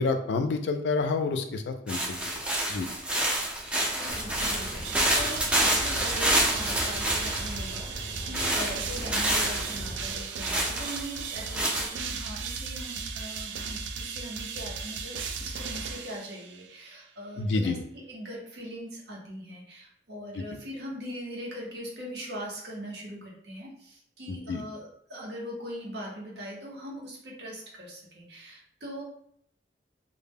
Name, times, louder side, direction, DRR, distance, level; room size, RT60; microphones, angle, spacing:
voice 1, 0.0-2.2 2.7-2.9 17.4-17.8 20.4-20.5 24.3-24.6, left 3 dB, 75° left, 7 dB, 0.3 m, -28 dB
sound 1, 1.9-7.8 8.3-9.8 10.4-11.9, right 1 dB, 5° right, 0.3 m, -28 dB
voice 2, 3.4-17.8 18.1-29.0, equal, 70° right, -3 dB, 0.8 m, -41 dB
sound 2, 4.1-10.2, equal, 40° right, 0.7 m, -41 dB
sound 3, 4.8-16.7, right 5 dB, 90° right, 0.3 m, -36 dB
2.0 x 2.0 x 3.4 m, 0.66 s
head